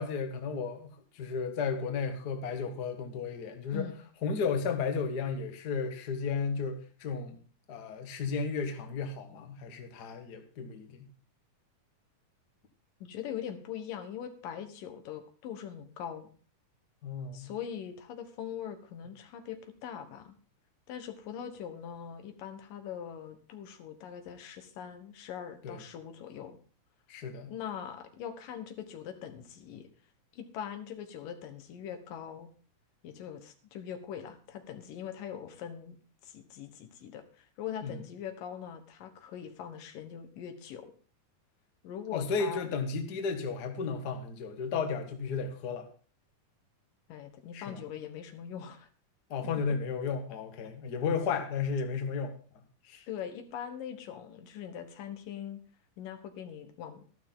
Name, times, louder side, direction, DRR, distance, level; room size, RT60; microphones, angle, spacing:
voice 1, 0.0-3.9 4.2-7.4 7.7-11.1 17.0-17.5 25.6-25.8 27.1-27.5 37.8-37.9 42.1-45.9 47.5-47.8 49.3-52.3 52.8-53.1, left 5 dB, 45° left, 6 dB, 1.4 m, -33 dB
voice 2, 13.0-16.3 17.3-20.3 20.9-26.6 27.5-29.9 30.3-32.5 33.0-36.0 36.2-40.9 41.8-42.7 47.1-48.9 53.1-55.6 56.0-57.0, left 9 dB, 90° left, 7 dB, 3.0 m, -42 dB
12.5 x 12.0 x 3.8 m, 0.39 s
omnidirectional pair, 3.7 m